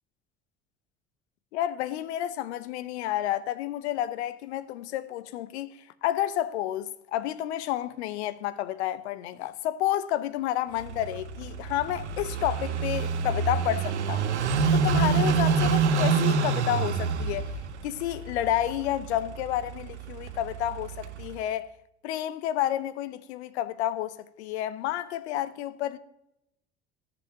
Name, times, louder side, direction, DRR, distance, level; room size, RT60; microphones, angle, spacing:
voice 1, 1.5-17.5 17.8-21.7 22.0-26.0, left 12 dB, 75° left, 0.7 m, -30 dB
Car passing by / Idling, 10.8-21.4, right 5 dB, 90° right, 0.7 m, -27 dB
14.0 x 7.9 x 2.8 m
hypercardioid pair, 60°, 33 cm